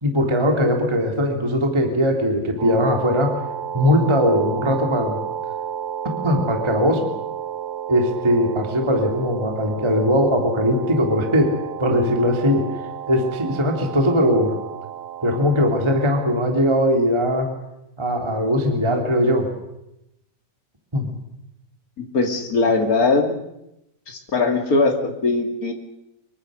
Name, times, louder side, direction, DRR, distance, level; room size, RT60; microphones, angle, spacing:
voice 1, 0.0-3.3 3.7-5.2 6.2-7.0 7.9-11.5 11.8-12.6 13.1-14.6 15.2-17.5 18.0-19.5 20.9-21.1, equal, 10° right, 3 dB, 2.4 m, -20 dB
sound 1, 2.6-16.3, right 9 dB, 85° right, 1.8 m, -32 dB
voice 2, 22.0-23.4 24.1-25.7, left 3 dB, 30° left, 4 dB, 1.9 m, -20 dB
25.0 x 22.5 x 6.5 m, 0.87 s
omnidirectional pair, 5.2 m